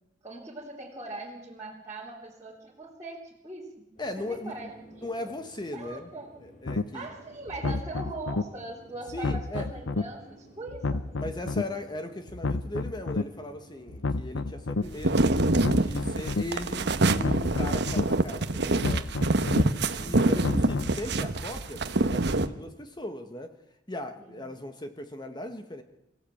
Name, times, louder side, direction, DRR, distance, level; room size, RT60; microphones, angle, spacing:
voice 1, 0.2-3.7 4.3-5.3 5.7-6.3 6.9-11.0 19.8-20.3 24.2-24.3, right 2 dB, 15° right, -7 dB, 3.4 m, -41 dB
sound 1, 4.0-19.0, right 1 dB, 45° left, 6.7 m, -54 dB
voice 2, 4.0-4.5 5.0-6.1 6.4-7.1 7.6-7.7 9.1-9.7 11.2-15.4 15.8-19.1 20.0-23.5 23.9-25.8, left 1 dB, 20° left, 7 dB, 1.3 m, -38 dB
sound 2, 6.7-6.8 7.5-8.4 9.1-10.0 10.7-11.6 12.3-13.2 13.9-14.8 15.5-16.4 17.1-18.0 18.7-19.6 20.3-21.0, left 3 dB, 80° left, 0.8 m, -30 dB
sound 3, 14.8-22.5, right 2 dB, 60° right, 1.2 m, -25 dB
26.0 x 15.0 x 8.6 m, 0.89 s
head